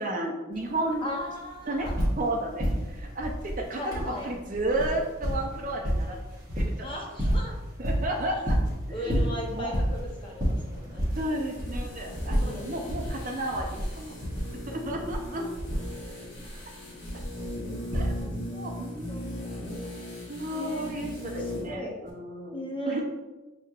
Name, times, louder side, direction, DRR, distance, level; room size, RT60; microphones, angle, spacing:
voice 1, 0.0-1.1 1.7-1.9 2.2-6.2 6.6-7.3 7.8-8.6 9.0-9.7 11.2-14.2 14.7-15.5 17.9-18.1 18.5-19.3 20.3-22.6 22.9-23.0, right 1 dB, 40° right, 1 dB, 0.5 m, -32 dB
sound 1, 0.5-0.6 0.9-2.3 2.6-18.6 19.6-19.7, equal, 20° right, 1.1 m, -30 dB
voice 2, 1.0-2.0 3.7-4.3 6.8-7.6 8.9-11.1 12.3-12.8 17.9-19.5 19.8-20.2 20.5-20.9 21.4-21.9 22.5-23.0, equal, 25° left, -1 dB, 0.6 m, -38 dB
sound 2, 11.1-21.8 22.0-22.1, left 1 dB, 60° left, 1.2 m, -39 dB
6.1 x 2.8 x 2.4 m, 1.1 s
head